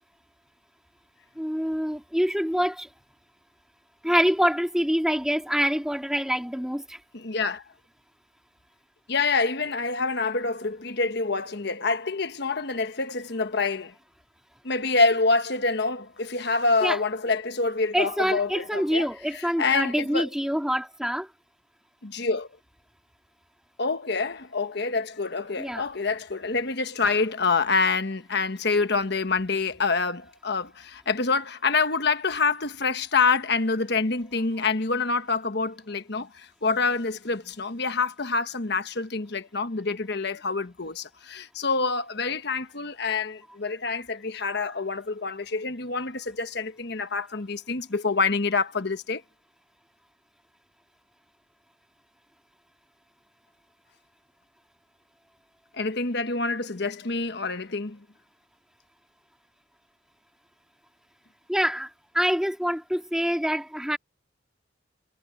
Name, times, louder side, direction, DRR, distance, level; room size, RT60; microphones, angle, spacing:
voice 1, 1.4-2.9 4.0-7.0 16.8-17.0 17.9-21.3 25.6-25.9 61.5-64.0, equal, 5° right, 2.6 m, -26 dB
voice 2, 7.1-7.6 9.1-13.9 14.6-20.3 22.0-22.5 23.8-49.2 55.7-58.0, left 4 dB, 55° left, 1.3 m, -26 dB
head